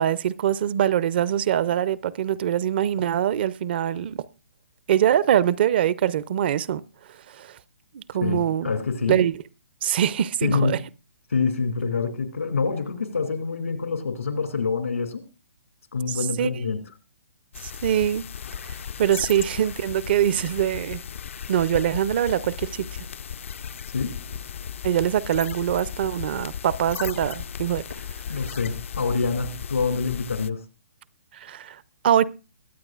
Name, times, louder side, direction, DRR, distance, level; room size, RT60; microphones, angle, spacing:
voice 1, 0.0-4.2 4.9-6.8 7.3-7.6 7.9-8.7 9.1-9.3 9.8-10.8 16.1-16.5 17.6-18.2 18.7-21.0 21.5-22.9 24.8-27.8 31.3-32.2, right 10 dB, 45° right, 0.5 m, -23 dB
voice 2, 8.2-9.2 10.4-10.8 11.3-15.2 15.9-16.8 23.9-24.2 28.3-30.6, left 5 dB, 85° left, 2.5 m, -26 dB
sound 1, 17.5-30.5, left 8 dB, 65° left, 0.5 m, -36 dB
22.5 x 8.5 x 2.4 m
hypercardioid pair, 140°, 7 cm